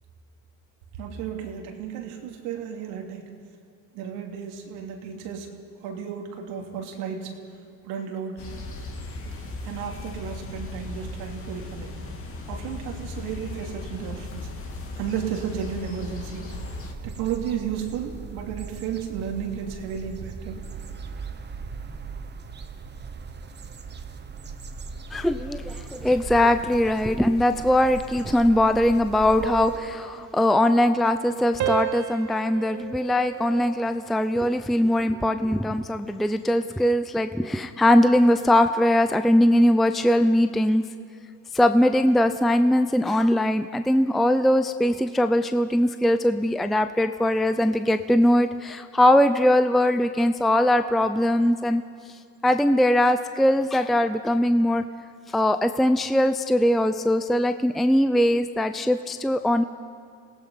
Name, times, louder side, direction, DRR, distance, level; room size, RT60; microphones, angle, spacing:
voice 1, 0.9-3.3 3.9-5.5 5.8-8.4 9.6-11.9 12.5-14.5 14.9-16.7 17.0-20.6, right 8 dB, 90° right, 2 dB, 3.0 m, -33 dB
sound 1, 8.4-16.9, left 2 dB, 35° left, 2.6 m, -37 dB
sound 2, 16.5-29.8, right 5 dB, 25° right, 1.3 m, -39 dB
voice 2, 25.1-40.8 41.5-51.8 52.4-54.8 55.3-59.6, left 1 dB, ahead, 9 dB, 0.5 m, -21 dB
sound 3, 29.4-31.3 31.6-34.2 34.6-35.0, right 15 dB, 45° right, 0.8 m, -34 dB
26.5 x 18.0 x 5.7 m, 2.3 s
cardioid pair, 120°, 38 cm